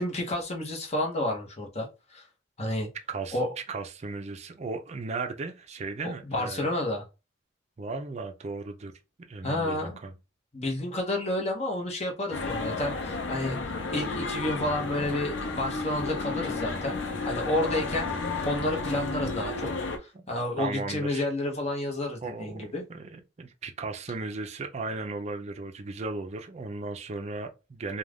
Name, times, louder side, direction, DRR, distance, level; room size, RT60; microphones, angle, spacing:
voice 1, 0.0-2.2 2.6-2.9 3.3-3.5 6.2-7.0 9.4-10.0 10.5-17.0 17.2-18.1 18.4-19.7 20.0-22.8, left 1 dB, 35° left, 0.8 m, -30 dB
voice 2, 3.7-6.7 7.8-8.9 9.3-10.2 20.1-20.3 20.6-21.2 22.2-28.0, right 3 dB, 35° right, 0.4 m, -36 dB
sound 1, 12.3-20.0, left 3 dB, 80° left, 0.5 m, -32 dB
2.5 x 2.2 x 3.3 m
head